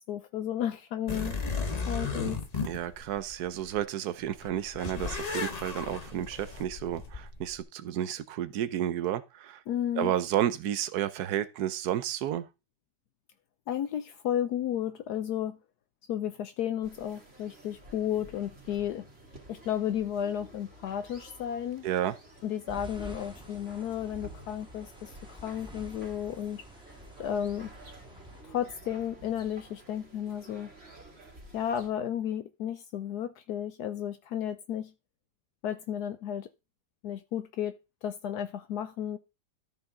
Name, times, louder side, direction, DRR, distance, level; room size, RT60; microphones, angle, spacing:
voice 1, 0.1-2.4 2.6-2.8 9.7-10.1 13.7-15.6 16.1-19.1 19.5-21.9 22.4-26.6 27.2-27.7 28.4-30.7 31.5-34.9 35.6-36.5 37.0-39.2, left 10 dB, 75° left, 1.2 m, -33 dB
sound 1, 1.1-3.8 4.3-7.6, left 4 dB, 30° left, 1.0 m, -35 dB
voice 2, 2.6-9.6 10.0-12.5 21.8-22.2, right 11 dB, 70° right, 1.2 m, -31 dB
sound 2, 16.8-31.9, right 1 dB, 35° right, 2.9 m, -52 dB
sound 3, 22.7-28.4, equal, 5° right, 1.6 m, -49 dB
13.0 x 5.7 x 3.7 m
omnidirectional pair, 1.8 m